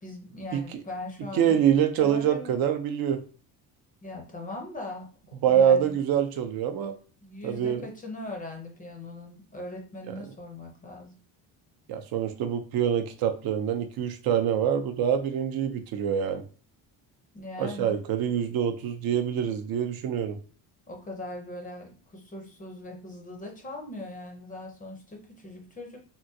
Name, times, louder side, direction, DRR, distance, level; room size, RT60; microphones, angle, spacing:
voice 1, 0.0-1.7 2.0-2.6 4.0-5.1 5.4-6.0 7.2-11.1 17.3-18.0 20.9-26.0, left 2 dB, 20° left, 1 dB, 0.5 m, -40 dB
voice 2, 1.3-3.2 5.4-6.9 7.4-7.8 10.1-10.2 11.9-16.4 17.6-20.4, right 9 dB, 60° right, 8 dB, 0.5 m, -25 dB
3.7 x 2.1 x 2.6 m, 0.41 s
cardioid pair, 165°, 41 cm